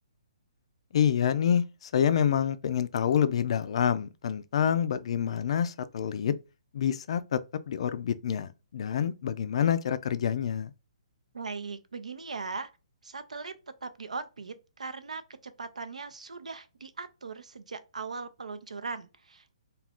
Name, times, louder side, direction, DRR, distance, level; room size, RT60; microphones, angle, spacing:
voice 1, 0.9-6.4 6.7-7.4 7.7-10.7, left 8 dB, 60° left, 0.3 m, -27 dB
voice 2, 11.3-12.7 13.0-13.5 13.8-19.6, right 4 dB, 90° right, 0.5 m, -39 dB
2.4 x 2.3 x 3.5 m
hypercardioid pair, 140°, 4 cm